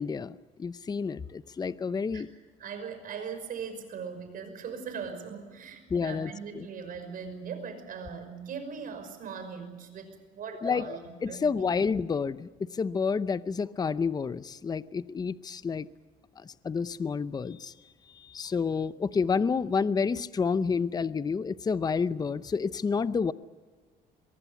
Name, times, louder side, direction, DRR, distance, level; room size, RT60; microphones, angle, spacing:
voice 1, 0.0-2.3 5.9-6.7 10.6-15.9 16.4-17.7 18.2-23.3, left 5 dB, 25° left, 15 dB, 0.7 m, -29 dB
voice 2, 2.6-11.8, right 6 dB, 55° right, 8 dB, 5.8 m, -40 dB
23.5 x 22.5 x 7.2 m, 1.4 s
cardioid pair, 110°, 17 cm